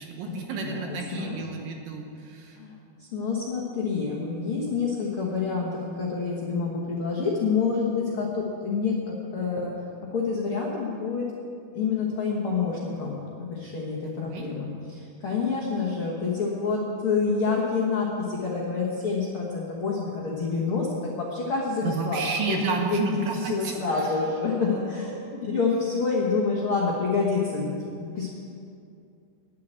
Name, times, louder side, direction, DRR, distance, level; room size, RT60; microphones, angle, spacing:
voice 1, 0.0-2.6 14.0-14.5 21.8-24.3 24.6-24.9, right 4 dB, 70° right, 2 dB, 2.3 m, -31 dB
voice 2, 0.5-1.4 2.6-2.7 3.0-9.7 10.1-11.2 11.7-20.9 21.2-22.2 22.5-22.6 22.9-28.3, left 4 dB, 80° left, -3 dB, 1.2 m, -27 dB
10.5 x 8.5 x 9.1 m, 2.5 s
omnidirectional pair, 4.7 m